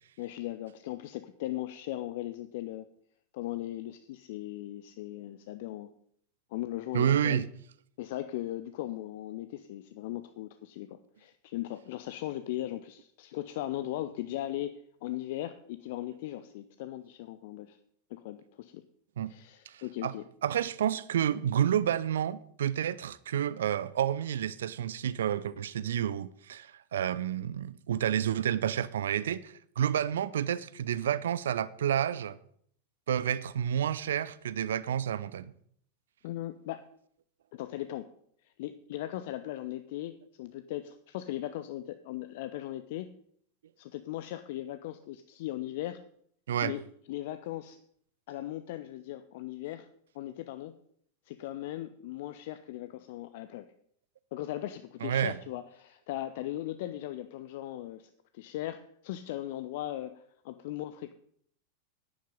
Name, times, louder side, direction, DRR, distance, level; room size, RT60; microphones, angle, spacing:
voice 1, 0.2-2.9 3.3-5.9 6.5-7.4 8.0-17.8 18.1-18.8 19.3-20.2 36.2-36.8 37.5-38.1 38.4-43.1 43.8-46.0 46.6-46.8 47.1-47.8 48.3-49.9 50.1-50.7 51.3-53.7 54.3-61.1, left 14 dB, 50° left, 0.6 m, -38 dB
voice 2, 6.9-7.5 19.2-19.3 19.7-20.1 20.4-32.4 33.1-35.5 46.5-46.7 55.0-55.4, right 9 dB, 60° right, 0.6 m, -30 dB
10.5 x 10.5 x 5.3 m
figure-of-eight pair, 90°, 0 cm